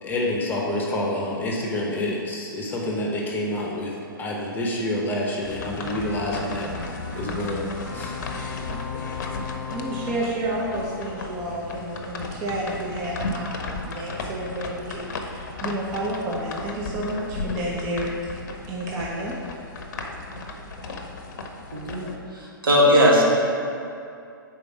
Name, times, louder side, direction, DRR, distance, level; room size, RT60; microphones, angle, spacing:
voice 1, 0.0-7.7 7.9-8.1, left 1 dB, 15° left, -2 dB, 0.9 m, -28 dB
sound 1, 5.4-22.2, left 3 dB, 50° left, 0.7 m, -35 dB
sound 2, 5.6-11.7, left 4 dB, 10° right, 1.3 m, -38 dB
voice 2, 9.7-18.2 18.7-19.4, right 1 dB, 30° right, -4 dB, 0.8 m, -30 dB
voice 3, 21.7-23.2, equal, 70° right, -3 dB, 1.5 m, -19 dB
5.1 x 4.3 x 5.9 m, 2.5 s
figure-of-eight pair, 115°, 12 cm